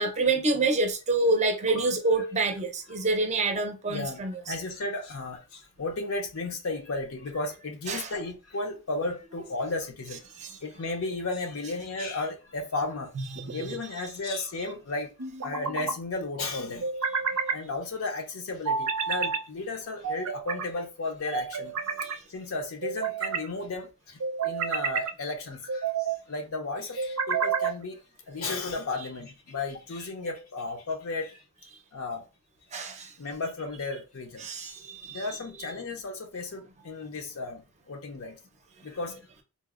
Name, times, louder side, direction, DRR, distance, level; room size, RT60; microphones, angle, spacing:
voice 1, 0.0-4.3 7.9-8.1 10.4-10.5 13.4-13.5 32.7-32.9 34.4-35.3, right 3 dB, 30° right, 0.5 m, -27 dB
voice 2, 3.9-10.2 10.6-13.1 13.5-15.1 15.4-16.9 17.5-21.7 22.3-25.9 26.3-28.0 28.3-31.4 31.9-32.2 33.2-34.5 35.1-38.4 38.8-39.2, left 3 dB, 65° left, 0.5 m, -34 dB
sound 1, 13.1-13.8 15.2-16.0 16.8-17.6 18.7-19.4 20.0-20.7 21.3-22.2 22.8-23.5 24.2-25.1 25.7-26.2 27.0-27.8, right 6 dB, 80° right, 0.5 m, -30 dB
3.9 x 2.0 x 2.3 m
head